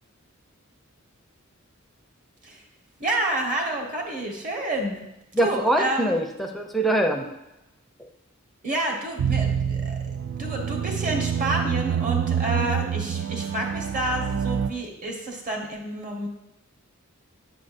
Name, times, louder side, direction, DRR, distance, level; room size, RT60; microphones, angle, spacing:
voice 1, 3.0-5.0 5.4-6.1 8.6-10.0 10.4-16.3, right 1 dB, 40° right, 0 dB, 1.2 m, -29 dB
voice 2, 5.3-7.3 8.0-8.1, right 1 dB, ahead, 2 dB, 0.5 m, -23 dB
sound 1, 9.2-14.7, right 8 dB, 60° right, 0.3 m, -26 dB
7.6 x 6.1 x 2.5 m, 0.93 s
head